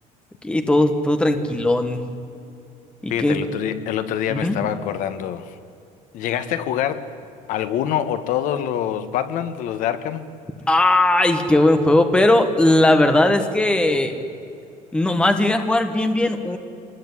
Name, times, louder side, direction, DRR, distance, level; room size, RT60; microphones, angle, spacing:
voice 1, 0.4-2.0 3.0-3.4 4.3-4.6 10.7-14.1 14.9-16.6, left 1 dB, 5° left, 7 dB, 1.6 m, -18 dB
voice 2, 3.1-5.6 6.1-7.1 7.5-10.2, left 10 dB, 55° left, 11 dB, 1.5 m, -25 dB
26.5 x 20.5 x 9.9 m, 2.6 s
cardioid pair, 175°, 16 cm